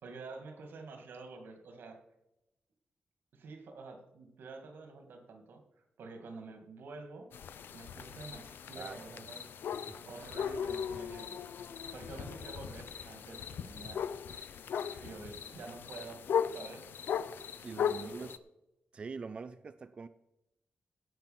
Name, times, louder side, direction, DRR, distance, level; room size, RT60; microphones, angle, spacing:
voice 1, 0.0-2.0 3.3-5.6 6.0-7.3 7.7-9.5 10.0-11.4 11.9-14.0 15.0-16.2 16.5-16.9 17.6-18.3, right 3 dB, 85° right, 5 dB, 2.2 m, -48 dB
sound 1, 7.3-18.4, left 8 dB, 85° left, 0.5 m, -38 dB
sound 2, 8.9-9.2 9.9-10.6 10.9-11.4 11.9-13.2 13.9-14.6 14.9-15.4 15.8-15.9, equal, 10° left, 2.9 m, -66 dB
voice 2, 17.6-18.4 18.9-20.1, right 4 dB, 30° right, 11 dB, 0.4 m, -44 dB
16.5 x 6.0 x 5.8 m, 0.89 s
wide cardioid pair, 180°, 3 cm